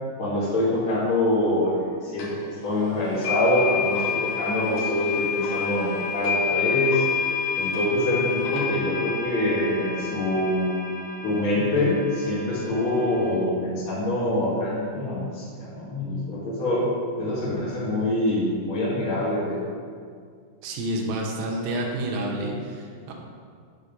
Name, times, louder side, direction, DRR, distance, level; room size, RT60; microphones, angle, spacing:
voice 1, 0.2-2.3 2.6-7.0 7.6-10.7 11.2-16.9 17.2-19.6, left 1 dB, 40° left, -9 dB, 2.2 m, -25 dB
sound 1, 2.2-2.3 3.2-13.3, left 6 dB, 60° left, 2.0 m, -28 dB
voice 2, 20.6-23.1, right 1 dB, 90° right, -1 dB, 3.1 m, -29 dB
7.4 x 7.2 x 5.3 m, 2.1 s
omnidirectional pair, 4.8 m